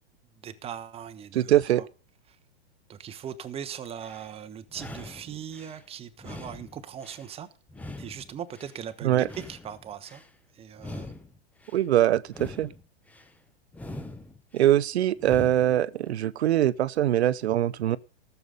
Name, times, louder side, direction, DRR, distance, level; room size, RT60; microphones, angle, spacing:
voice 1, 0.4-1.9 2.9-7.5 8.0-10.2 10.5-11.1, right 9 dB, 20° right, 1.0 m, -39 dB
voice 2, 1.3-1.8 9.0-9.3 11.7-12.7 14.5-18.0, right 12 dB, 80° right, 0.6 m, -23 dB
sound 1, 3.9-4.3 4.7-5.8 6.2-7.3 7.7-8.8 9.2-10.3 10.7-11.8 12.2-13.3 13.7-14.7 15.2-15.8, left 2 dB, 5° left, 0.7 m, -43 dB
14.0 x 7.0 x 6.8 m
hypercardioid pair, 130°, 32 cm